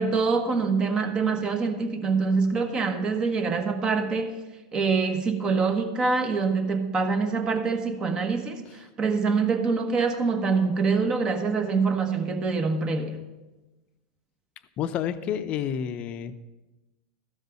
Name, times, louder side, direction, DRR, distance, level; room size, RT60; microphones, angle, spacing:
voice 1, 0.0-4.4 4.7-13.2, right 4 dB, 25° right, 7 dB, 1.2 m, -25 dB
voice 2, 14.8-16.3, left 9 dB, 35° left, 11 dB, 0.7 m, -29 dB
14.0 x 5.4 x 6.4 m, 1.1 s
supercardioid pair, 130°, 3 cm